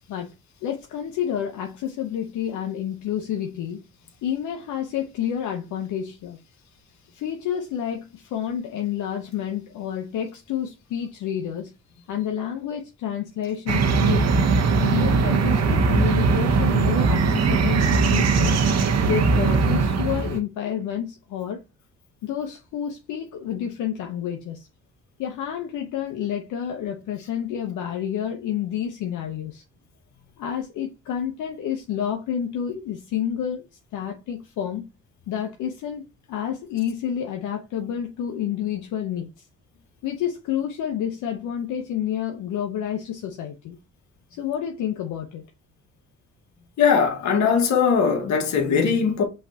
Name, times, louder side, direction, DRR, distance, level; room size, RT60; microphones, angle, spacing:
voice 1, 0.6-3.8 4.2-6.4 7.1-11.7 12.1-14.4 14.8-18.6 19.0-21.6 22.2-24.7 25.2-29.6 30.4-33.6 33.9-34.9 35.3-39.4 40.0-43.8 44.3-45.4, left 9 dB, 85° left, 0.8 m, -29 dB
sound 1, 13.7-20.4, right 4 dB, 60° right, 1.0 m, -20 dB
voice 2, 46.8-49.2, left 6 dB, 65° left, 1.5 m, -20 dB
5.7 x 3.3 x 2.8 m
cardioid pair, 90°, 30 cm